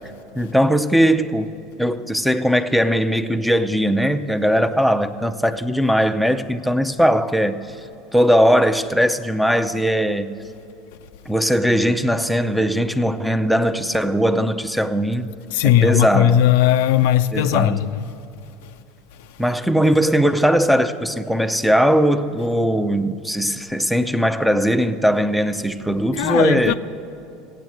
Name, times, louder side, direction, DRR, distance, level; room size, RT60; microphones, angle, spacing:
voice 1, 0.4-1.5 1.8-7.5 8.1-10.3 11.3-15.3 15.6-16.5 17.3-17.9 19.4-26.7, equal, ahead, 0.5 m, -19 dB
voice 2, 15.5-18.0 26.2-26.7, left 11 dB, 80° left, 0.4 m, -17 dB
15.5 x 8.8 x 7.7 m
supercardioid pair, 110°, 0 cm